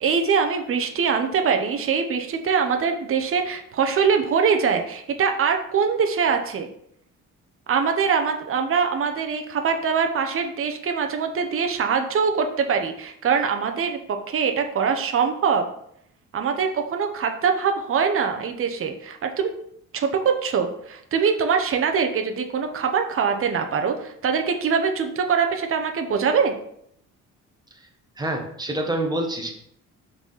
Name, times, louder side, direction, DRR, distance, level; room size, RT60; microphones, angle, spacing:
voice 1, 0.0-6.7 7.7-15.6 16.3-19.5 19.9-26.5, right 6 dB, 45° right, 5 dB, 0.9 m, -23 dB
voice 2, 28.2-29.5, right 1 dB, 15° right, 2 dB, 1.6 m, -27 dB
5.9 x 4.1 x 5.6 m, 0.70 s
cardioid pair, 90°, 30 cm